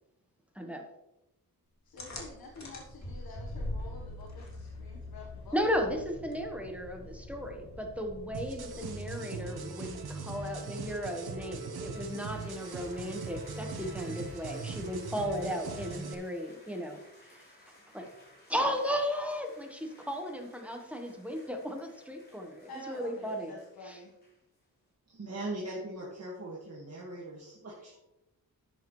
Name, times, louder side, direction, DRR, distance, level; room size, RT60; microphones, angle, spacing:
voice 1, 1.8-5.6 22.7-24.1, left 2 dB, 70° left, -1 dB, 1.4 m, -48 dB
sound 1, 2.0-9.1, left 1 dB, 45° left, 2.3 m, -43 dB
voice 2, 5.5-17.0 17.3-17.4 17.9-18.1 18.5-23.6 23.8-24.0, equal, 5° right, 3 dB, 1.3 m, -35 dB
sound 2, 8.3-16.1, right 4 dB, 80° right, 1.3 m, -40 dB
sound 3, 11.9-24.6, left 1 dB, 25° left, 3.9 m, -59 dB
voice 3, 25.1-28.0, right 1 dB, 40° right, -4 dB, 1.9 m, -40 dB
11.5 x 8.0 x 3.2 m, 0.90 s
wide cardioid pair, 160°, 37 cm